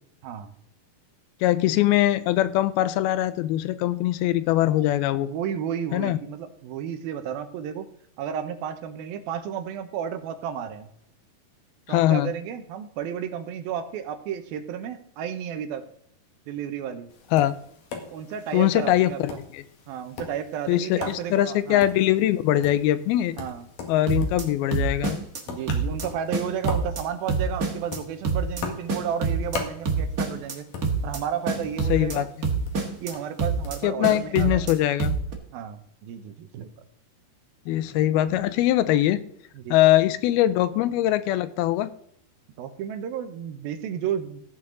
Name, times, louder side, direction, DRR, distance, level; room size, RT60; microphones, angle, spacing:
voice 1, 1.4-5.3 5.9-6.2 11.9-12.3 17.3-17.5 18.5-19.6 20.7-23.4 23.9-25.2 31.9-32.3 33.8-35.2 37.7-39.2 39.7-41.9, left 13 dB, 85° left, 14 dB, 2.6 m, -22 dB
voice 2, 5.1-7.9 8.2-10.9 11.9-15.8 16.5-17.1 18.1-19.4 19.9-21.8 23.4-23.7 25.5-30.7 31.0-32.3 33.0-34.6 35.5-36.7 39.5-39.8 42.6-44.4, right 8 dB, 80° right, 9 dB, 2.8 m, -32 dB
Tap, 17.1-33.8, left 4 dB, 65° left, 3.2 m, -41 dB
sound 1, 24.1-24.4 24.7-25.4 25.7-26.0 26.3-27.0 27.3-28.0 28.2-28.6 28.9-29.6 29.9-30.5 30.8-31.2 31.5-32.2 32.4-33.1 33.4-33.8 34.0-34.7 35.0-35.3, right 4 dB, 50° right, 1.0 m, -26 dB
16.0 x 8.7 x 3.9 m, 0.69 s
omnidirectional pair, 4.3 m